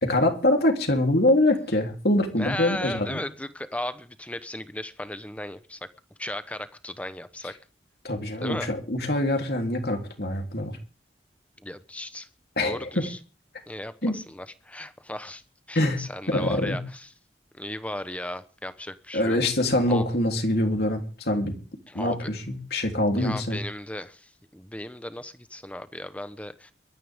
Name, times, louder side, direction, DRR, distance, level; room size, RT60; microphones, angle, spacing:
voice 1, 0.0-3.2 8.0-10.8 12.6-13.1 14.0-14.1 15.7-16.0 16.3-16.8 19.1-21.5 21.9-23.6, left 1 dB, 60° left, 3 dB, 3.6 m, -24 dB
voice 2, 2.4-5.8 6.2-7.5 8.4-8.7 11.6-12.3 12.6-13.2 13.7-15.4 15.7-17.1 17.5-19.4 19.9-20.1 21.9-22.3 23.1-26.7, left 1 dB, 10° left, 11 dB, 1.0 m, -36 dB
23.5 x 13.5 x 3.7 m, 0.37 s
head